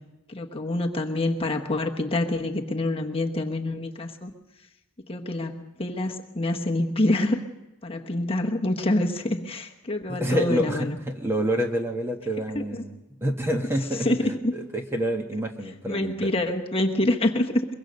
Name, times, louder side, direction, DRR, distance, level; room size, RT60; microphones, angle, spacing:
voice 1, 0.3-4.3 5.1-7.4 7.8-11.0 12.5-12.8 13.9-14.5 15.9-17.7, left 1 dB, 25° left, 2 dB, 1.1 m, -26 dB
voice 2, 10.1-16.2, equal, 10° right, 4 dB, 1.2 m, -28 dB
23.0 x 22.5 x 5.3 m, 0.99 s
head